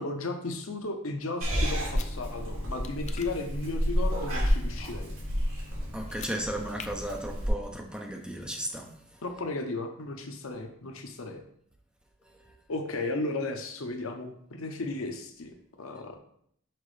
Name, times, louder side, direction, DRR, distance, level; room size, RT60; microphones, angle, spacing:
voice 1, 0.0-5.1 9.2-11.4 12.7-16.2, left 2 dB, 75° left, 6 dB, 0.7 m, -35 dB
Purr / Meow, 1.4-7.5, equal, 65° right, 2.4 m, -30 dB
sound 1, 1.7-2.1 2.8-3.3 6.0-6.4 6.8-6.9, left 7 dB, 35° left, 0.4 m, -44 dB
voice 2, 5.9-8.9, right 1 dB, 5° right, 1 dB, 0.6 m, -35 dB
5.9 x 5.2 x 3.2 m, 0.68 s
head